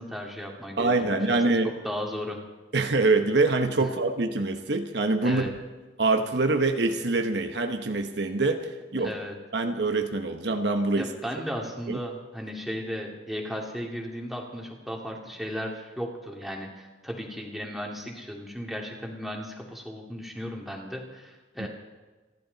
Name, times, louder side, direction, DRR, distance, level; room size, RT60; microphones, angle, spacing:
voice 1, 0.0-1.6 1.8-2.4 3.8-3.9 5.2-5.5 9.0-9.4 10.9-21.7, equal, ahead, -1 dB, 2.4 m, -35 dB
voice 2, 0.8-1.7 2.7-5.4 6.0-9.1 9.5-11.1 11.9-12.0 21.6-21.7, right 3 dB, 60° right, 6 dB, 1.0 m, -25 dB
29.0 x 12.0 x 4.0 m, 1.2 s
head